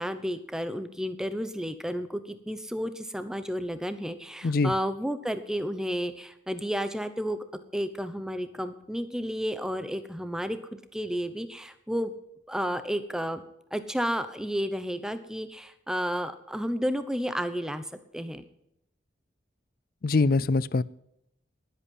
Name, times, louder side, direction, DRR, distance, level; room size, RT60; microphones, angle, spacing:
voice 1, 0.0-12.1 12.5-13.4 13.7-17.9 18.1-18.4, equal, 5° right, 0.9 m, -32 dB
voice 2, 4.4-4.7 20.0-20.8, left 3 dB, 50° left, 0.4 m, -23 dB
19.5 x 8.3 x 5.5 m
head